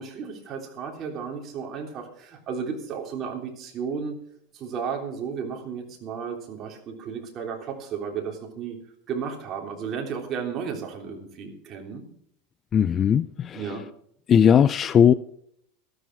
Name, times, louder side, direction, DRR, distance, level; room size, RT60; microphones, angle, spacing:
voice 1, 0.0-4.2 4.5-8.7 9.1-12.1 13.5-13.8, right 6 dB, 30° right, 2 dB, 3.4 m, -33 dB
voice 2, 12.7-13.8 14.3-15.1, left 8 dB, 25° left, 17 dB, 0.4 m, -18 dB
14.0 x 13.0 x 4.7 m, 0.68 s
supercardioid pair, 150°, 0 cm